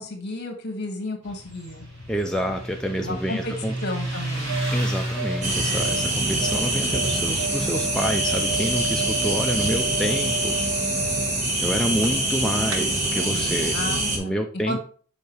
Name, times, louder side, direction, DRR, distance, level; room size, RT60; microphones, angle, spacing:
voice 1, 0.0-1.9 3.0-3.5 3.8-4.6 13.7-14.3 14.7-14.8, left 2 dB, 50° left, 4 dB, 1.6 m, -32 dB
Motorcycle, 1.2-12.3, right 1 dB, 60° right, 2.6 m, -33 dB
voice 2, 2.1-3.7 4.7-10.6 11.6-13.8 14.1-14.8, equal, 5° left, 2 dB, 0.4 m, -28 dB
sound 1, 4.2-12.4 12.6-12.8, right 3 dB, 75° right, 1.0 m, -32 dB
sound 2, 5.4-14.2, right 2 dB, 35° right, 1.4 m, -25 dB
7.1 x 4.6 x 3.2 m, 0.43 s
head